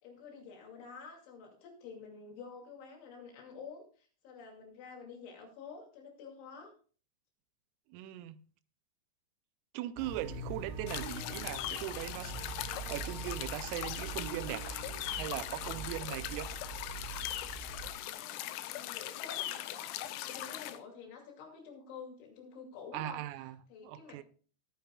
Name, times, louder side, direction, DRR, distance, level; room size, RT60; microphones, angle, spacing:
voice 1, 0.0-6.7 18.1-23.2 23.7-24.2, left 5 dB, 70° left, 4.9 m, -49 dB
voice 2, 7.9-8.4 9.7-12.3 12.7-14.8 15.2-16.5 22.9-24.2, right 13 dB, 90° right, 3.3 m, -40 dB
sound 1, 10.0-17.9, right 4 dB, 65° right, 3.9 m, -43 dB
sound 2, 10.9-20.8, left 13 dB, 85° left, 2.5 m, -40 dB
19.5 x 9.3 x 2.3 m
omnidirectional pair, 5.8 m